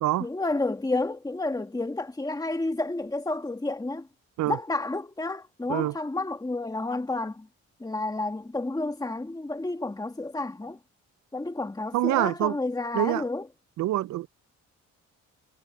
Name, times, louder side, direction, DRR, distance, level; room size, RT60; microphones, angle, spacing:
voice 1, 0.2-4.1 4.5-7.5 7.8-10.8 11.3-13.4, left 2 dB, 10° left, 1.7 m, -30 dB
voice 2, 11.9-12.6 12.9-13.2 13.8-14.3, right 15 dB, 70° right, 0.5 m, -25 dB
cardioid pair, 90°, 30 cm